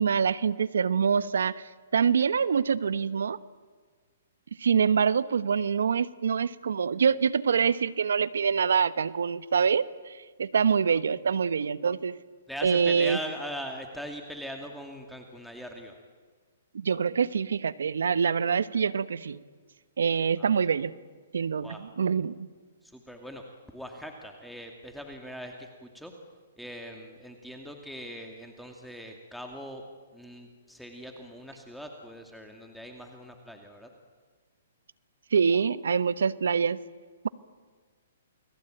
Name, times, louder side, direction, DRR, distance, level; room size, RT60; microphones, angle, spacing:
voice 1, 0.0-1.6 1.9-3.4 4.6-12.2 12.6-13.2 16.7-19.4 20.0-20.9 21.3-22.5 35.3-36.8, right 6 dB, 80° right, 16 dB, 1.1 m, -25 dB
voice 2, 12.5-16.0 20.4-20.5 21.6-21.8 22.8-23.4 23.7-26.1 26.6-29.8 30.1-33.9, equal, ahead, 2 dB, 2.4 m, -41 dB
29.0 x 21.5 x 9.1 m, 1.5 s
hypercardioid pair, 135°, 0 cm